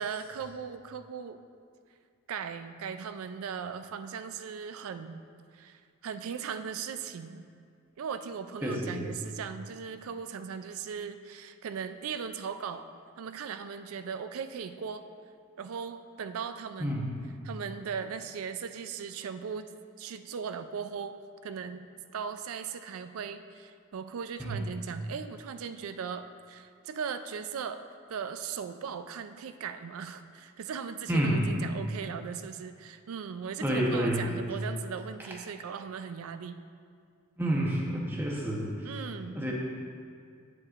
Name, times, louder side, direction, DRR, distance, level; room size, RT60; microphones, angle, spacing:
voice 1, 0.0-1.4 2.3-5.2 5.5-7.5 8.0-12.9 13.2-15.0 15.6-17.0 17.4-19.7 20.0-21.1 21.4-21.9 22.1-27.8 28.1-36.6 38.8-39.4, right 6 dB, 75° right, 10 dB, 0.4 m, -38 dB
voice 2, 8.6-9.1 16.8-17.2 24.4-24.6 31.1-31.5 33.6-34.3 37.4-39.0 39.3-39.5, right 1 dB, 10° right, -3 dB, 0.8 m, -29 dB
8.4 x 7.8 x 2.5 m, 2.2 s
head